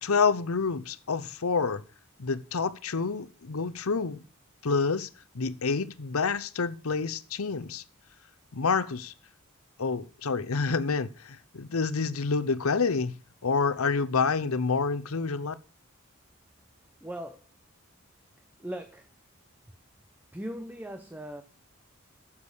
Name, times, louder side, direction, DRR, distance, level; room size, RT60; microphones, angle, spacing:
voice 1, 0.0-1.8 2.2-4.2 4.6-5.1 5.3-7.8 8.5-9.1 9.8-13.2 13.4-15.5, left 4 dB, 85° left, 0.8 m, -28 dB
voice 2, 17.0-17.5 18.6-19.1 20.3-21.4, right 1 dB, 10° right, 0.7 m, -39 dB
9.8 x 7.4 x 6.5 m
head